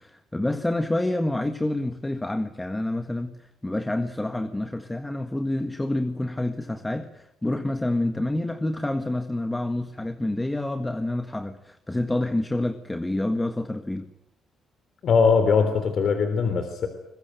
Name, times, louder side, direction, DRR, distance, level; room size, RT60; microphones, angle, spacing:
voice 1, 0.0-14.1, left 1 dB, 10° left, 8 dB, 1.7 m, -28 dB
voice 2, 15.0-16.9, left 5 dB, 60° left, 8 dB, 3.5 m, -21 dB
23.0 x 20.5 x 9.2 m, 0.83 s
cardioid pair, 90°, 0 cm